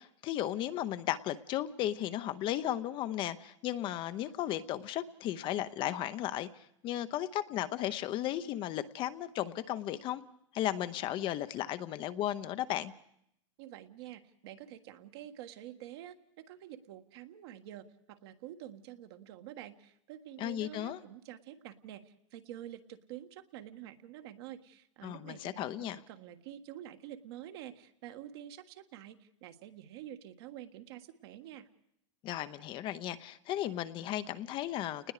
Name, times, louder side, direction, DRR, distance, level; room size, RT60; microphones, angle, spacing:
voice 1, 0.0-6.5 6.8-10.2 10.5-12.9 20.4-21.0 25.0-26.0 32.2-35.1, left 12 dB, 30° left, 12 dB, 0.8 m, -35 dB
voice 2, 13.6-31.7, right 12 dB, 55° right, 7 dB, 1.7 m, -48 dB
29.5 x 20.0 x 4.9 m, 0.74 s
hypercardioid pair, 140°, 16 cm